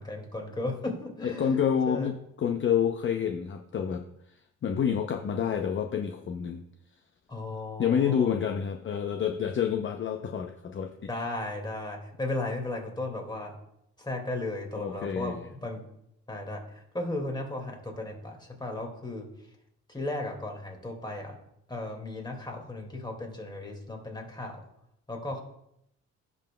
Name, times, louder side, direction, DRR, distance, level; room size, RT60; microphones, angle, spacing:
voice 1, 0.0-1.6 1.9-2.1 7.3-8.4 11.1-13.5 14.0-15.8 16.3-19.3 19.9-21.3 21.7-24.6 25.1-25.4, left 2 dB, 15° left, 2 dB, 2.0 m, -35 dB
voice 2, 1.2-6.6 7.8-10.9 14.7-15.5, left 8 dB, 40° left, 5 dB, 0.6 m, -28 dB
16.0 x 5.4 x 2.2 m, 0.79 s
cardioid pair, 90°, 30 cm